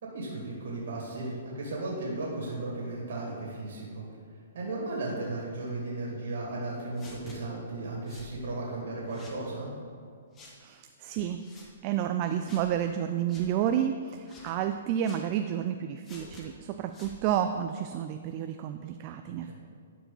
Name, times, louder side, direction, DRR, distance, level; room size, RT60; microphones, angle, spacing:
voice 1, 0.0-4.0 4.5-9.7 19.4-19.5, right 2 dB, 65° right, -4 dB, 2.2 m, -35 dB
sound 1, 7.0-7.4 8.1-8.3 9.1-9.4 10.3-10.6 11.4-11.7 12.5-12.7 13.3-13.5 14.3-14.6 15.0-15.3 16.0-16.5 16.9-17.2, left 2 dB, 20° left, 1.1 m, -50 dB
voice 2, 10.6-11.4 11.8-19.5, right 10 dB, 35° right, 7 dB, 0.3 m, -30 dB
12.0 x 4.7 x 4.0 m, 2.1 s
hypercardioid pair, 145°, 0 cm